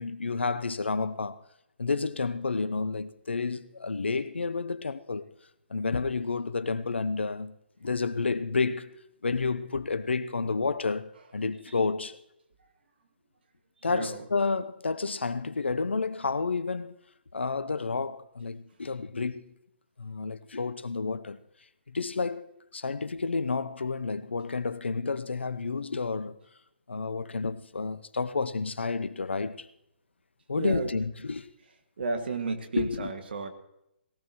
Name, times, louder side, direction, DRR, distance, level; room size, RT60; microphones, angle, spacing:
voice 1, 0.0-1.4 1.8-5.2 5.7-7.5 7.8-12.2 13.8-17.0 17.3-19.5 20.0-21.4 21.9-26.4 26.9-29.7 30.5-31.5 32.8-33.1, left 4 dB, 80° left, 0.8 m, -30 dB
voice 2, 13.9-14.3 30.6-30.9 32.0-33.5, right 4 dB, 65° right, 2.1 m, -32 dB
19.5 x 18.0 x 3.1 m
figure-of-eight pair, 135°, 6 cm